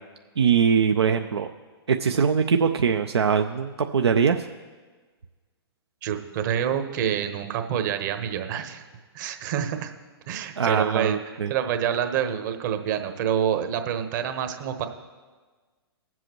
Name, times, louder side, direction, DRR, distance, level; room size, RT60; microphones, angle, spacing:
voice 1, 0.4-1.5 1.9-4.4 10.6-11.5, right 6 dB, 80° right, 6 dB, 0.5 m, -22 dB
voice 2, 6.0-8.8 9.1-9.9 10.3-11.2 11.5-14.9, right 9 dB, 45° right, 7 dB, 1.2 m, -27 dB
20.5 x 7.7 x 3.1 m, 1.4 s
hypercardioid pair, 120°, 13 cm